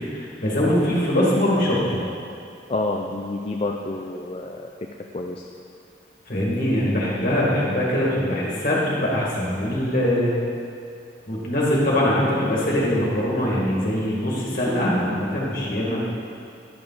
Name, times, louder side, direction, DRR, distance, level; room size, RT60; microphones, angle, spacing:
voice 1, 0.0-2.0 6.3-10.3 11.3-16.0, left 1 dB, 50° left, -5 dB, 2.0 m, -22 dB
voice 2, 2.7-4.9 5.1-5.5, left 2 dB, 35° left, 2 dB, 0.4 m, -29 dB
10.5 x 6.8 x 4.0 m, 2.4 s
head